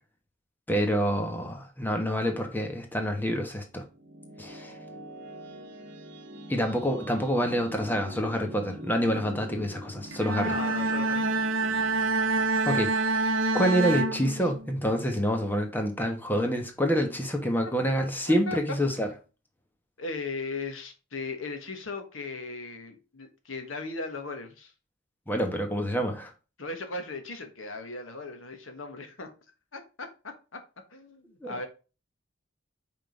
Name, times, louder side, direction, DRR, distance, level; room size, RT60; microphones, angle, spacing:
voice 1, 0.7-3.8 4.4-4.7 6.5-10.6 12.6-13.3 13.5-19.1 25.3-26.3 31.4-31.7, equal, 10° left, 1.1 m, -27 dB
sound 1, 3.5-14.5, right 1 dB, 60° right, 1.3 m, -45 dB
Bowed string instrument, 10.1-14.8, right 3 dB, 80° right, 0.8 m, -27 dB
voice 2, 10.4-11.5 14.4-14.5 18.5-18.6 20.0-24.7 26.6-29.3 29.7-30.6 30.9-31.7, left 3 dB, 85° left, 1.3 m, -37 dB
5.3 x 3.8 x 5.1 m
head